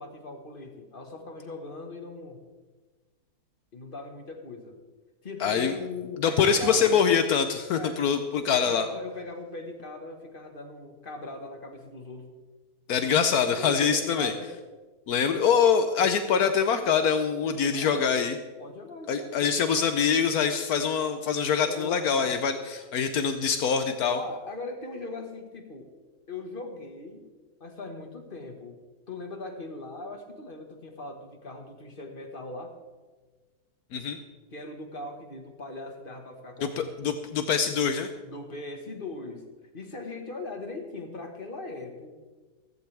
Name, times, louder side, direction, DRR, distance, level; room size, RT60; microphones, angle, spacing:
voice 1, 0.0-2.4 3.7-4.8 5.2-7.0 7.7-8.0 8.5-12.3 13.6-14.5 17.7-18.1 18.6-19.6 21.6-22.4 24.1-25.9 26.3-27.3 27.6-28.8 29.1-32.7 34.5-36.9 38.2-39.5 39.7-42.1, left 2 dB, 35° left, 4 dB, 1.7 m, -39 dB
voice 2, 5.4-5.8 6.2-8.9 12.9-14.3 15.1-18.4 19.1-24.2 33.9-34.2 36.6-38.1, left 6 dB, 75° left, 8 dB, 1.3 m, -24 dB
15.5 x 15.0 x 3.5 m, 1.3 s
omnidirectional pair, 1.6 m